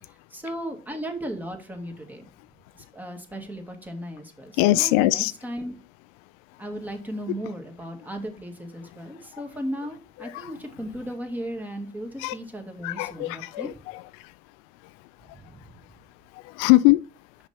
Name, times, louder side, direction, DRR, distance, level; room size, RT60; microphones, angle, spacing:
voice 1, 0.0-2.3 2.9-5.8 6.6-13.7 15.3-15.6, equal, 10° right, 1.9 m, -36 dB
voice 2, 4.6-5.3 9.2-9.4 10.2-10.5 12.2-12.4 12.8-14.3 15.3-15.4 16.3-17.0, left 19 dB, 80° left, 0.4 m, -22 dB
5.8 x 5.3 x 4.2 m
supercardioid pair, 85°, 18 cm